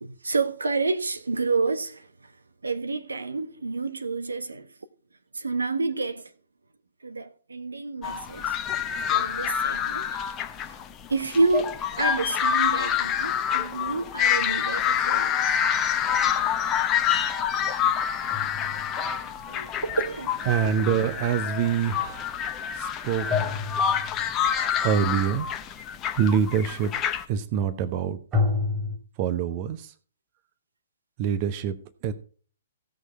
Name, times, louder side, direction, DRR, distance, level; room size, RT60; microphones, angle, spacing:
voice 1, 0.0-2.3 2.6-4.7 5.3-6.3 7.0-8.6 9.1-10.1 11.1-15.4 19.8-20.5, right 3 dB, 75° right, 1.0 m, -29 dB
sound 1, 8.0-27.2, left 8 dB, 20° left, 0.8 m, -27 dB
sound 2, 17.9-21.6 23.3-24.4 28.3-29.0, left 4 dB, 20° right, 3.0 m, -31 dB
voice 2, 20.5-22.5 22.7-23.6 24.8-25.5 26.2-26.9 27.3-28.2 29.2-29.9 31.2-31.8 32.0-32.1, right 8 dB, 35° right, 0.9 m, -25 dB
16.0 x 6.4 x 4.3 m
figure-of-eight pair, 120°, 0 cm